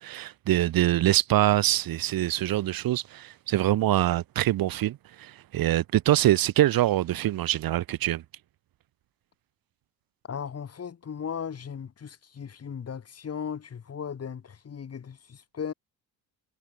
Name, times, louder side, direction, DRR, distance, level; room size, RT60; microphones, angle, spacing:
voice 1, 0.0-8.2, right 14 dB, 70° right, 1.8 m, -24 dB
voice 2, 10.3-15.7, left 7 dB, 40° left, 7.4 m, -37 dB
cardioid pair, 105°, 36 cm